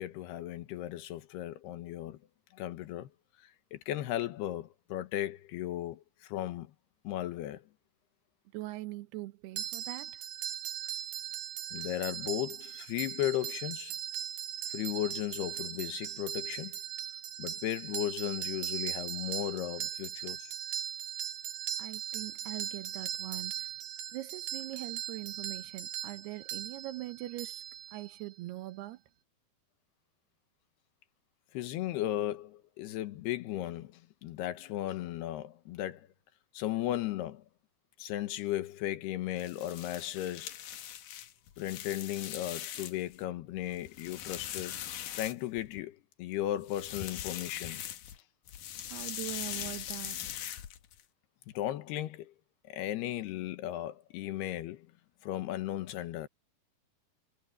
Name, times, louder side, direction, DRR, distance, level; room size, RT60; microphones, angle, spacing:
voice 1, 0.0-2.2 2.5-3.1 3.4-6.7 7.0-7.6 11.7-13.9 14.7-16.8 17.4-20.5 31.5-36.1 36.5-37.4 38.0-40.6 41.6-44.8 45.1-47.8 51.5-52.3 52.7-54.9 55.2-56.3, left 13 dB, 80° left, 3.2 m, -36 dB
voice 2, 8.5-10.2 21.8-23.7 24.1-27.6 27.9-29.0 48.9-50.2, right 16 dB, 85° right, 3.1 m, -42 dB
sound 1, 9.6-28.3, right 11 dB, 65° right, 2.8 m, -39 dB
sound 2, 39.3-43.2 43.6-45.8 46.6-48.2 48.5-51.0, left 11 dB, 65° left, 2.4 m, -41 dB
omnidirectional pair, 4.6 m